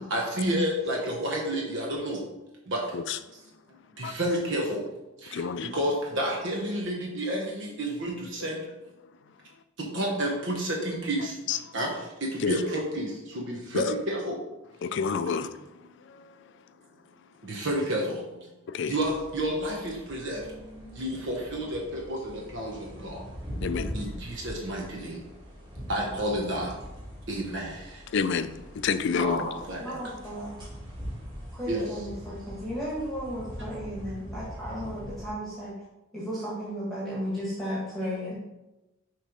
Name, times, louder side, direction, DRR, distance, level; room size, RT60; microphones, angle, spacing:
voice 1, 0.1-2.2 2.7-2.8 4.0-4.8 5.2-5.4 5.7-8.6 9.8-11.9 12.2-14.4 15.2-15.3 17.4-18.2 18.9-20.4 21.0-23.2 23.9-25.2 25.9-26.7 27.3-28.0 29.2-30.0 31.7-31.8, right 1 dB, 60° right, 0.9 m, -30 dB
voice 2, 5.3-5.8 8.4-8.5 9.0-9.1 11.5-11.7 12.4-12.6 13.7-13.9 14.8-16.5 17.5-17.7 18.7-19.0 23.6-24.1 28.1-29.4, left 6 dB, 55° left, 0.4 m, -30 dB
sound 1, 19.0-35.3, equal, 25° right, 1.8 m, -42 dB
voice 3, 22.9-23.3 26.0-26.1 29.1-29.5 29.8-30.7 31.5-35.7 36.1-38.3, equal, ahead, 1.4 m, -35 dB
6.4 x 3.1 x 5.0 m
head